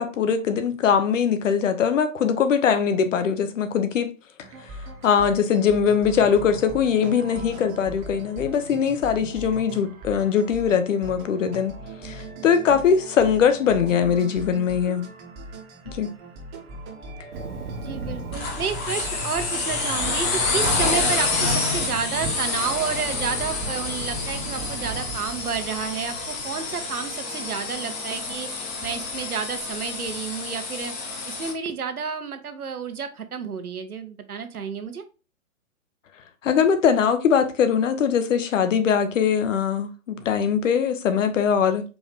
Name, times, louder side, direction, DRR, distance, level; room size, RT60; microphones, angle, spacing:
voice 1, 0.0-4.1 5.0-11.7 12.0-15.0 16.0-16.1 36.4-41.8, left 7 dB, 60° left, 0.9 m, -21 dB
sound 1, 4.4-20.8, right 1 dB, 25° right, 0.9 m, -39 dB
Thunder, 17.3-27.0, right 2 dB, 55° right, 0.8 m, -36 dB
voice 2, 17.8-30.9 31.3-35.0, right 6 dB, 90° right, 0.9 m, -30 dB
sound 2, 18.3-31.5, left 3 dB, 25° left, 0.9 m, -28 dB
4.7 x 2.6 x 3.4 m
hypercardioid pair, 130°, 43 cm